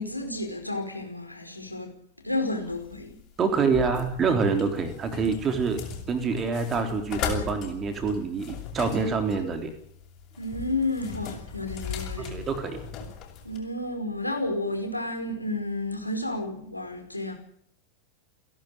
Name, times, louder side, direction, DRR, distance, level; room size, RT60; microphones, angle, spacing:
voice 1, 0.0-1.9 2.2-3.1 10.4-12.4 13.4-17.3, left 2 dB, 85° left, 5.0 m, -31 dB
sound 1, 2.7-13.6, left 8 dB, 35° left, 6.8 m, -38 dB
voice 2, 3.4-5.8 6.1-9.7 12.2-12.8, right 5 dB, 25° right, 3.6 m, -26 dB
29.0 x 11.5 x 9.1 m
figure-of-eight pair, 90°, 0 cm